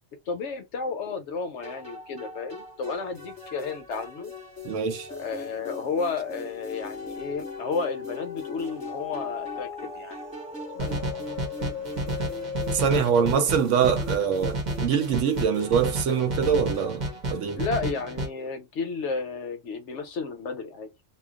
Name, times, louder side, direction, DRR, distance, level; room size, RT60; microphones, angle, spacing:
voice 1, 0.3-4.3 5.1-10.2 10.7-11.5 17.6-20.9, left 4 dB, 65° left, 0.9 m, -32 dB
sound 1, 1.6-17.6, equal, 5° right, 1.0 m, -43 dB
sound 2, 3.1-3.6 4.0-16.5 17.0-17.1, left 6 dB, 40° left, 0.7 m, -39 dB
voice 2, 4.6-5.1 12.7-17.6, right 7 dB, 75° right, 0.9 m, -24 dB
sound 3, 10.8-18.3, right 2 dB, 40° right, 0.7 m, -31 dB
2.3 x 2.2 x 3.5 m
omnidirectional pair, 1.4 m